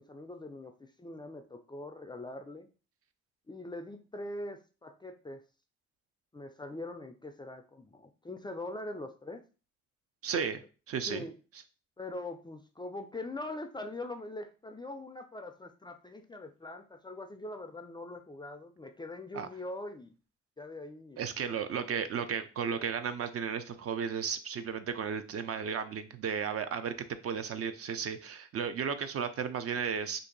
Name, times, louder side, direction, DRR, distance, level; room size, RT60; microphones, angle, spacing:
voice 1, 0.0-2.7 3.5-5.4 6.3-9.4 11.1-11.3 12.0-20.1 20.6-21.2, left 2 dB, 15° left, 7 dB, 0.3 m, -42 dB
voice 2, 10.2-11.2 19.3-19.5 21.2-30.2, right 7 dB, 50° right, 10 dB, 0.4 m, -34 dB
2.8 x 2.6 x 3.8 m, 0.34 s
cardioid pair, 90°, 30 cm